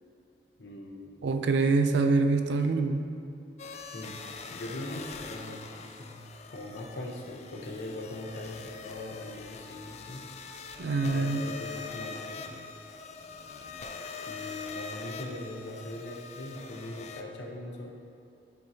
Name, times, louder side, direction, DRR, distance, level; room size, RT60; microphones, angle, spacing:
voice 1, 0.6-1.3 2.6-2.7 3.9-4.2 4.5-6.2 6.5-10.2 11.1-12.6 14.3-17.9, left 1 dB, 80° left, 0 dB, 0.8 m, -41 dB
voice 2, 1.2-3.0 10.8-11.4, right 3 dB, 85° right, 7 dB, 0.4 m, -25 dB
sound 1, 3.6-17.2, left 5 dB, 40° left, 0.3 m, -43 dB
10.0 x 4.5 x 2.7 m, 2.6 s
head